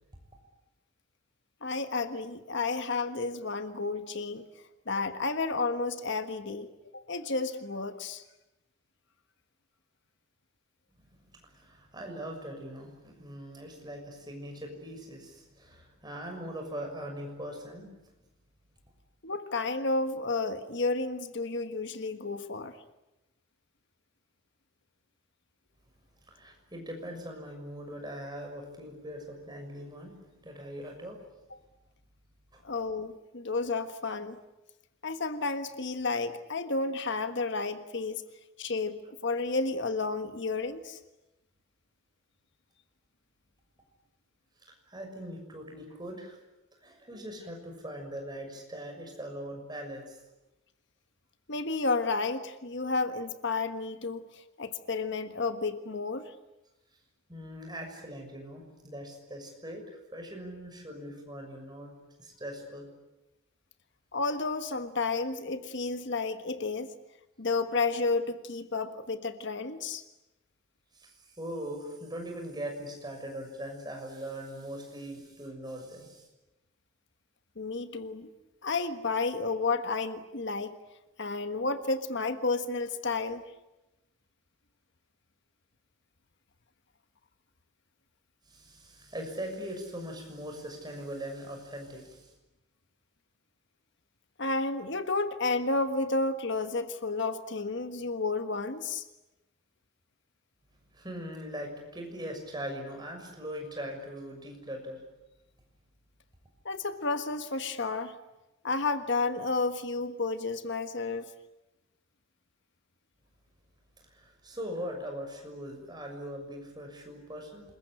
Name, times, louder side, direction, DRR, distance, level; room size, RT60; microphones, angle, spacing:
voice 1, 1.6-4.4 4.9-6.7 6.9-8.2 19.2-22.7 31.5-31.6 32.6-34.4 35.0-38.2 38.6-41.0 51.5-56.3 64.1-66.9 67.4-70.0 77.6-78.3 78.6-80.8 81.2-83.4 94.4-99.0 106.6-108.1 108.6-111.3, left 3 dB, 55° left, 9 dB, 1.5 m, -31 dB
voice 2, 11.0-17.9 26.3-31.2 32.5-32.6 44.6-46.4 46.8-50.2 57.3-62.9 70.9-76.3 88.5-92.3 100.9-105.0 114.0-117.6, equal, 20° right, 3 dB, 6.4 m, -41 dB
27.5 x 22.0 x 10.0 m, 0.97 s
head